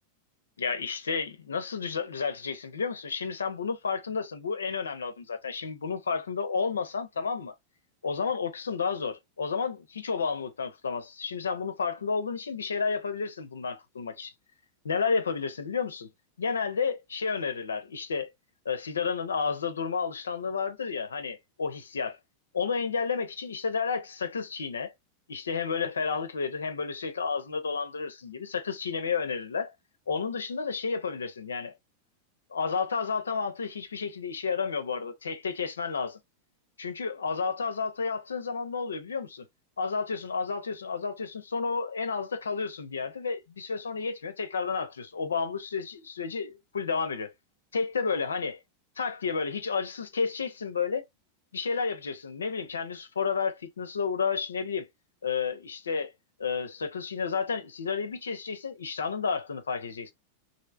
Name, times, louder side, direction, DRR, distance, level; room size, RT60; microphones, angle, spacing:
voice 1, 0.6-7.5 8.0-14.3 14.8-16.1 16.4-18.3 18.6-22.2 22.5-24.9 25.3-29.7 30.1-31.7 32.5-36.2 36.8-39.4 39.8-47.3 47.7-48.6 49.0-51.0 51.5-54.9 55.2-56.1 56.4-60.1, left 5 dB, 70° left, 0.7 m, -31 dB
3.2 x 2.7 x 2.5 m
figure-of-eight pair, 90°, 0 cm